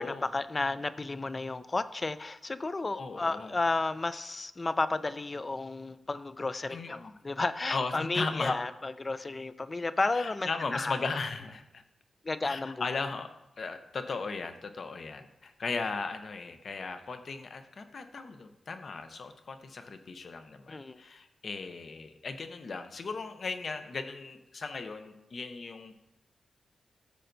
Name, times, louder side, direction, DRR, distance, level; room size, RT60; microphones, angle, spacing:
voice 1, 0.0-11.0 12.2-12.8 20.7-21.0, left 3 dB, 25° left, 14 dB, 0.3 m, -32 dB
voice 2, 2.9-3.5 6.7-7.1 7.7-8.6 10.1-11.8 12.4-26.0, left 4 dB, 50° left, 8 dB, 0.7 m, -37 dB
13.0 x 6.6 x 2.6 m, 0.91 s
wide cardioid pair, 150°, 0 cm